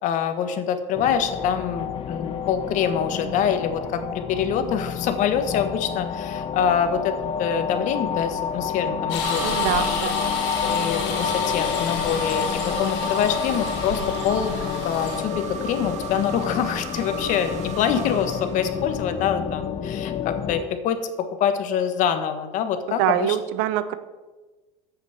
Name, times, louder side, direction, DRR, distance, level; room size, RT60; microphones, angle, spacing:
voice 1, 0.0-10.1 10.6-12.5 12.8-14.5 14.8-23.4, left 8 dB, 55° left, 9 dB, 1.4 m, -25 dB
sound 1, 0.9-20.6, left 7 dB, 40° left, 0.8 m, -29 dB
sound 2, 9.1-15.2, left 6 dB, 80° left, 2.4 m, -31 dB
sound 3, 9.2-19.2, right 7 dB, 50° right, 1.6 m, -36 dB
voice 2, 9.4-10.1 23.0-24.0, right 12 dB, 75° right, 14 dB, 0.8 m, -24 dB
8.8 x 8.1 x 7.3 m, 1.2 s
supercardioid pair, 115°, 15 cm